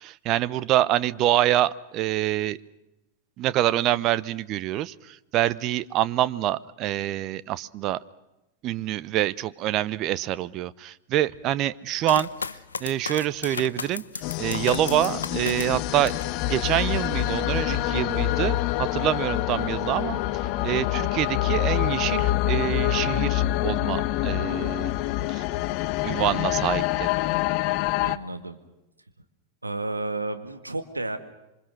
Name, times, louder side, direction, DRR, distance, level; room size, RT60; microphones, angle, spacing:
voice 1, 0.0-2.6 3.4-8.0 8.6-12.3 12.8-14.0 14.4-16.1 16.4-24.9 25.3-25.4 26.0-27.1, right 13 dB, 35° right, 17 dB, 0.9 m, -26 dB
sound 1, 12.0-16.3 16.8-17.4, left 5 dB, 75° left, 0.8 m, -34 dB
sound 2, 14.2-28.2, left 14 dB, 45° left, 0.8 m, -26 dB
voice 2, 28.0-28.6 29.6-31.2, right 2 dB, 80° right, 8 dB, 2.0 m, -31 dB
27.0 x 24.5 x 6.3 m, 0.95 s
figure-of-eight pair, 90°, 0 cm